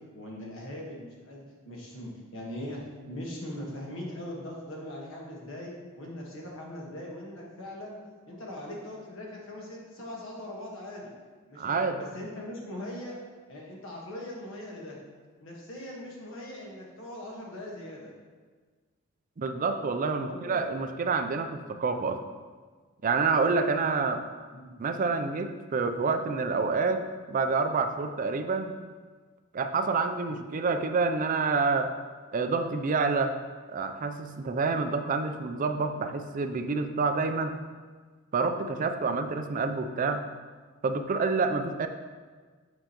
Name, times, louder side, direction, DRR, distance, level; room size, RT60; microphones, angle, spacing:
voice 1, 0.1-2.8 3.1-8.0 8.2-11.1 11.5-13.1 13.5-15.0 15.4-18.1 20.1-20.6 24.5-24.7 30.3-30.4, left 1 dB, 65° left, -2 dB, 1.3 m, -40 dB
voice 2, 11.6-12.0 19.4-22.2 23.0-24.2 24.8-27.0 27.3-28.8 29.5-31.9 32.3-33.4 33.7-37.6 38.3-40.2 40.8-41.9, right 4 dB, 40° right, 7 dB, 0.4 m, -28 dB
7.8 x 4.9 x 2.9 m, 1.5 s
head